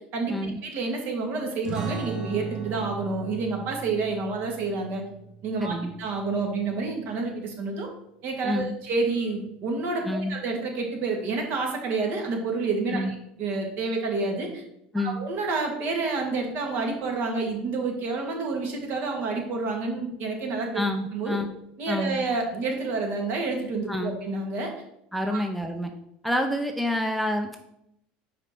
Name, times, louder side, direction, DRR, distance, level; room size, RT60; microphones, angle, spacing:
voice 1, 0.6-5.0 5.4-7.9 8.2-14.6 15.0-20.7 21.1-21.4 21.8-24.7 25.3-25.4, right 3 dB, 50° right, 2 dB, 1.9 m, -29 dB
sound 1, 1.6-6.8, right 4 dB, 20° right, 2.9 m, -38 dB
voice 2, 5.6-5.9 8.4-8.7 10.0-10.3 12.9-13.1 14.9-15.2 20.7-21.5 21.9-22.2 23.9-24.2 25.1-25.9 26.2-27.6, left 1 dB, ahead, 4 dB, 0.6 m, -28 dB
5.0 x 4.9 x 5.9 m, 0.79 s
supercardioid pair, 110°, 4 cm